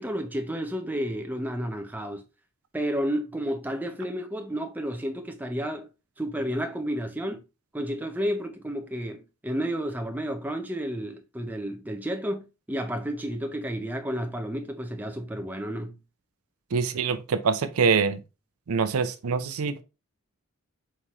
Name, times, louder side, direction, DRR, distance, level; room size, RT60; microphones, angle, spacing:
voice 1, 0.0-2.2 2.7-5.9 6.2-7.4 7.7-16.0, equal, 10° right, 0.5 m, -31 dB
voice 2, 16.7-18.2 18.7-19.8, right 5 dB, 75° right, 0.5 m, -25 dB
4.3 x 3.7 x 3.0 m
head